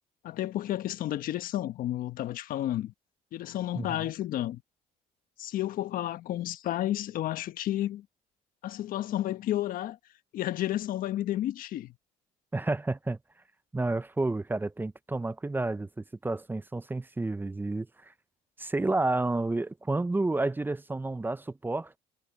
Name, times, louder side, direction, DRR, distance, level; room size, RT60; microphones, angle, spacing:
voice 1, 0.2-2.9 3.3-4.6 5.4-8.0 8.6-10.0 10.3-11.9, left 13 dB, 65° left, 1.4 m, -31 dB
voice 2, 3.7-4.1 12.5-13.2 13.7-18.1 18.6-22.0, right 2 dB, 15° right, 0.7 m, -30 dB
supercardioid pair, 85°, 16 cm